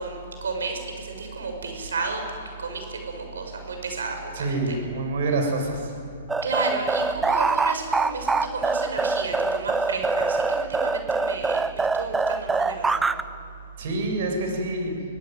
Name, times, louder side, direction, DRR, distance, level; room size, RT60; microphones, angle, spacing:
voice 1, 0.0-2.2 2.6-4.8 6.4-13.1, right 3 dB, 80° right, 4 dB, 7.1 m, -32 dB
voice 2, 4.3-5.9 13.8-14.9, right 2 dB, 60° right, 2 dB, 7.4 m, -26 dB
sound 1, 6.3-13.2, right 3 dB, 10° right, 0.7 m, -24 dB
25.0 x 19.0 x 9.6 m, 2.4 s
hypercardioid pair, 135°, 0 cm